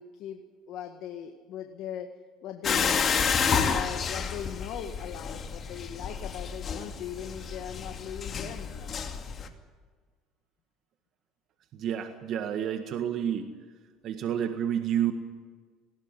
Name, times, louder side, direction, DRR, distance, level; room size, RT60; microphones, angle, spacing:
voice 1, 0.0-2.1 2.4-3.0 3.6-8.9, left 9 dB, 65° left, 6 dB, 1.7 m, -39 dB
sound 1, 2.6-9.5, left 6 dB, 40° left, 2.5 m, -30 dB
voice 2, 11.7-13.5 14.0-15.1, right 9 dB, 55° right, 7 dB, 1.7 m, -29 dB
19.5 x 17.5 x 9.9 m, 1.5 s
supercardioid pair, 85°, 0 cm